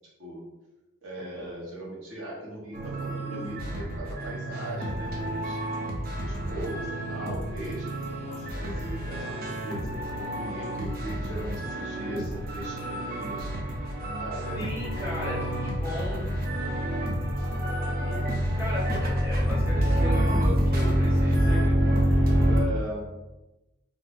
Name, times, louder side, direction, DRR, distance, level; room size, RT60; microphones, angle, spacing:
voice 1, 1.0-5.6 6.2-13.5 14.2-14.7 20.3-20.5 22.4-23.1, equal, 65° right, -5 dB, 1.1 m, -39 dB
sound 1, 2.7-22.6, right 1 dB, 45° right, 0.5 m, -31 dB
sound 2, 14.0-22.6, equal, 25° left, 0.4 m, -26 dB
voice 2, 14.5-16.3 18.0-18.2 18.6-21.7 22.0-22.5, equal, 10° right, -7 dB, 0.8 m, -37 dB
2.5 x 2.5 x 3.5 m, 1.0 s
head